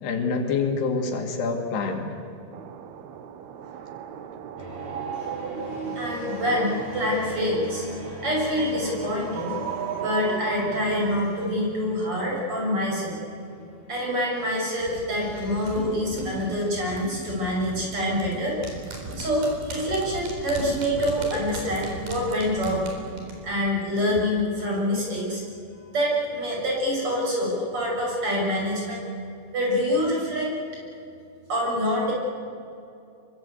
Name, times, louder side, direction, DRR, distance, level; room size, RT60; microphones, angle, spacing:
voice 1, 0.0-2.1, left 4 dB, 75° left, 3 dB, 4.4 m, -26 dB
sound 1, 2.5-11.2, right 9 dB, 75° right, 3.0 m, -35 dB
sound 2, 4.6-15.9, left 3 dB, 15° left, 5.1 m, -42 dB
voice 2, 6.0-7.9 8.2-9.6 10.0-13.2 13.9-18.6 19.2-22.8 23.4-25.4 25.9-29.0 29.5-30.5 31.5-32.1, equal, 30° right, -2 dB, 7.5 m, -26 dB
sound 3, 14.8-24.2 24.5-24.6, right 2 dB, 60° right, 5.8 m, -37 dB
25.5 x 23.5 x 8.3 m, 2.7 s
omnidirectional pair, 4.8 m